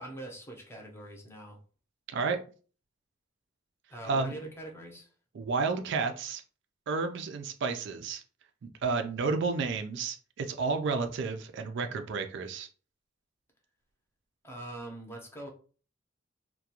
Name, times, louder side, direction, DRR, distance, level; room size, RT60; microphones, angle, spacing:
voice 1, 0.0-1.6 3.9-5.1 14.4-15.5, right 1 dB, 15° left, 1 dB, 0.6 m, -43 dB
voice 2, 5.3-6.4 6.9-8.2 8.6-12.7, right 4 dB, 65° right, 6 dB, 0.3 m, -31 dB
2.3 x 2.2 x 2.8 m, 0.39 s
head